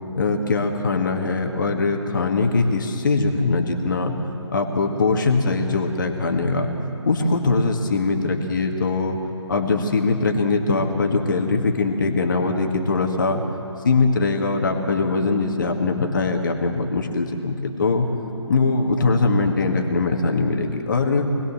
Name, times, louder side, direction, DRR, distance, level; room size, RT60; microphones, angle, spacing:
voice 1, 0.1-4.1 4.5-6.7 7.1-9.2 9.5-13.4 13.8-18.1 18.5-21.3, left 3 dB, 40° left, 3 dB, 2.2 m, -21 dB
26.0 x 20.0 x 7.6 m, 2.7 s
figure-of-eight pair, 145°, 16 cm